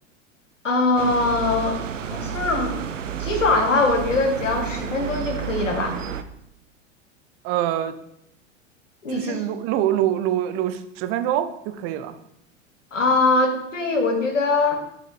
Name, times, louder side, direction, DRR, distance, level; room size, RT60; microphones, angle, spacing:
voice 1, 0.6-2.8 3.2-6.0 9.0-9.4 12.9-14.8, left 3 dB, 75° left, 5 dB, 1.6 m, -22 dB
sound 1, 1.0-6.2, right 8 dB, 75° right, 0.7 m, -31 dB
voice 2, 7.4-7.9 9.1-12.1, right 12 dB, 35° right, 10 dB, 0.8 m, -24 dB
9.3 x 6.4 x 3.3 m, 0.79 s
figure-of-eight pair, 85°, 38 cm